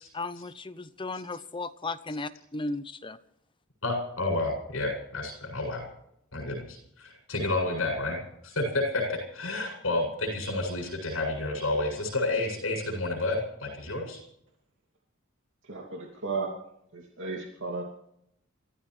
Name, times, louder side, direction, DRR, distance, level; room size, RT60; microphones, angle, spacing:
voice 1, 0.1-3.2, left 3 dB, 25° left, 13 dB, 0.8 m, -35 dB
voice 2, 3.8-5.8 6.3-14.2, left 2 dB, 75° left, 2 dB, 7.7 m, -30 dB
voice 3, 15.6-16.5 16.9-17.8, right 4 dB, 65° right, 0 dB, 2.8 m, -34 dB
28.0 x 14.5 x 3.3 m, 0.76 s
head